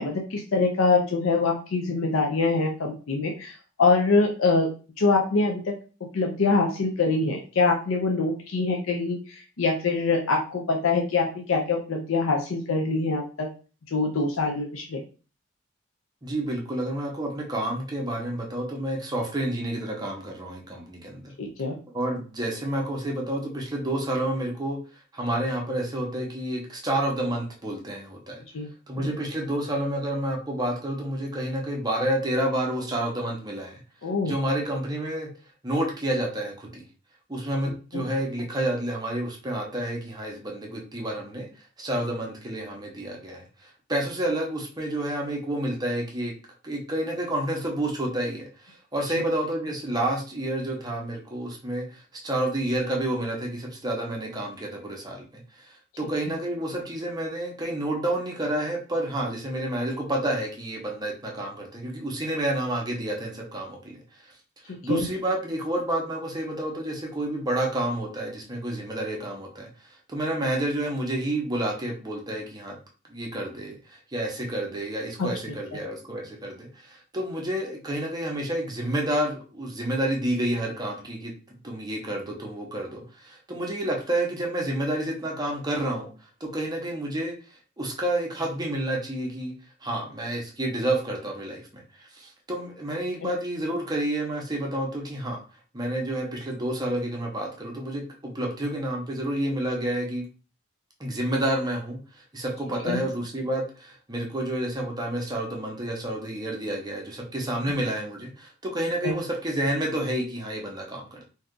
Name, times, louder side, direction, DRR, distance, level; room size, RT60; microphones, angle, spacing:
voice 1, 0.0-4.7 5.0-5.7 6.1-13.5 13.9-15.0 21.4-21.8 28.5-28.7 29.0-29.1 34.0-34.3 64.7-65.1 75.2-75.3 102.8-103.0 109.0-109.1, left 3 dB, 75° left, 2 dB, 0.5 m, -24 dB
voice 2, 16.2-21.3 21.9-24.8 25.1-28.4 28.9-33.8 34.2-35.3 35.6-36.8 37.3-41.5 41.8-46.3 46.6-64.3 64.8-72.8 73.1-81.3 81.6-86.1 86.4-87.3 87.8-89.5 89.8-91.6 92.0-95.4 95.7-100.2 101.0-111.2, right 1 dB, 20° right, 0 dB, 0.6 m, -29 dB
2.7 x 2.3 x 3.6 m, 0.36 s
head